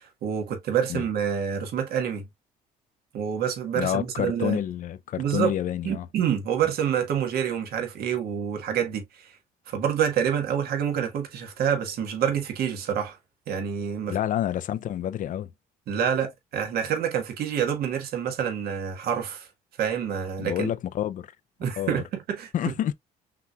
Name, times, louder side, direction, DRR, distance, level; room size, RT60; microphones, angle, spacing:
voice 1, 0.0-2.2 3.1-4.6 5.2-5.5 5.8-9.0 9.7-13.2 13.5-14.1 15.9-19.5 19.8-20.7 21.6-22.5, right 8 dB, 65° right, 1.5 m, -27 dB
voice 2, 3.7-6.1 6.6-6.7 14.1-15.5 20.4-21.3 21.8-22.0 22.5-22.9, left 11 dB, 50° left, 0.5 m, -28 dB
5.9 x 3.1 x 2.4 m
cardioid pair, 110°, 17 cm